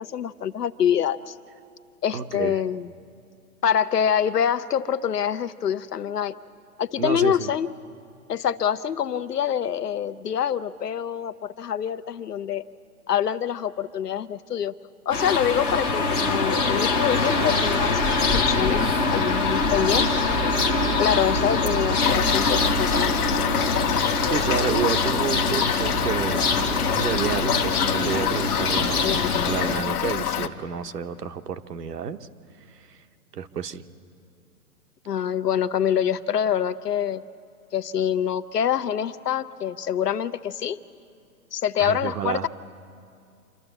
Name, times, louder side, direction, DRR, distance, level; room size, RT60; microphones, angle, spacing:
voice 1, 0.0-1.3 2.0-2.9 3.6-6.4 6.8-7.7 8.3-12.6 13.1-14.7 15.1-20.1 20.4-20.5 21.0-23.4 29.0-29.5 35.1-37.2 37.7-40.8 41.5-42.5, left 9 dB, 90° left, 12 dB, 0.8 m, -25 dB
voice 2, 2.1-2.6 7.0-7.5 24.2-26.4 26.9-32.3 32.7-33.0 33.3-33.8 41.8-42.5, right 7 dB, 85° right, 8 dB, 1.0 m, -30 dB
sound 1, 15.1-29.8, left 3 dB, 10° left, 0.4 m, -24 dB
Toilet flush / Fill (with liquid), 22.0-30.5, left 9 dB, 70° left, 1.1 m, -27 dB
27.0 x 12.0 x 8.0 m, 2.5 s
hypercardioid pair, 135°, 46 cm